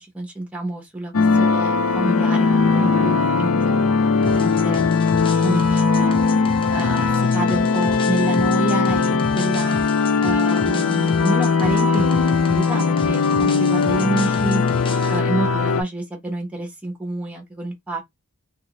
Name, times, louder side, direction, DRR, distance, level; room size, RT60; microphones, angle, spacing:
voice 1, 0.0-3.7 4.2-4.8 5.4-6.2 6.7-9.8 10.2-14.6 15.1-15.5 15.8-18.0, right 2 dB, 5° right, 1.0 m, -28 dB
sound 1, 1.1-15.8, left 4 dB, 65° left, 0.5 m, -19 dB
sound 2, 4.2-15.2, left 3 dB, 25° left, 0.6 m, -34 dB
2.8 x 2.6 x 2.9 m
head